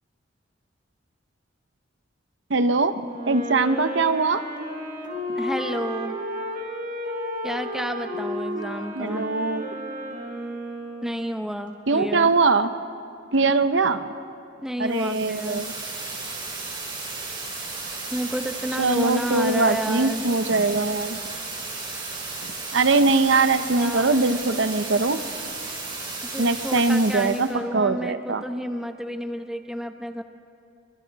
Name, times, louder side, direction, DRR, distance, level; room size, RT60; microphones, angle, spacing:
voice 1, 2.5-4.4 9.0-9.7 11.9-12.7 13.3-14.1 14.8-15.7 18.8-21.2 22.7-25.2 26.4-28.4, right 3 dB, 70° right, 10 dB, 0.8 m, -22 dB
Wind instrument woodwind instrument, 3.0-11.4, equal, 45° right, 4.4 m, -33 dB
voice 2, 5.4-6.2 7.4-9.3 11.0-12.3 14.6-15.6 18.1-20.2 23.6-24.4 26.3-30.2, equal, 5° right, 6 dB, 0.9 m, -30 dB
sound 1, 14.9-27.5, right 3 dB, 25° right, 5.5 m, -34 dB
27.0 x 25.0 x 4.1 m, 2.5 s
head